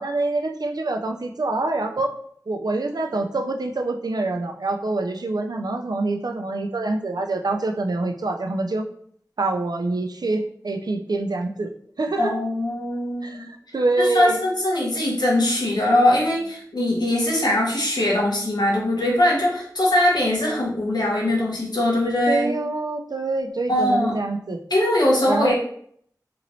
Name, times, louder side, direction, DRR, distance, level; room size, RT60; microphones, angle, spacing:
voice 1, 0.0-2.1 2.5-8.9 9.4-11.7 12.0-12.3 13.2-14.4 22.3-24.6 25.3-25.5, right 2 dB, 70° right, 4 dB, 0.4 m, -25 dB
voice 2, 12.2-13.5 14.0-22.5 23.7-24.1 24.7-25.5, left 1 dB, 80° left, -3 dB, 0.9 m, -21 dB
2.9 x 2.9 x 2.6 m, 0.63 s
wide cardioid pair, 45°, 7 cm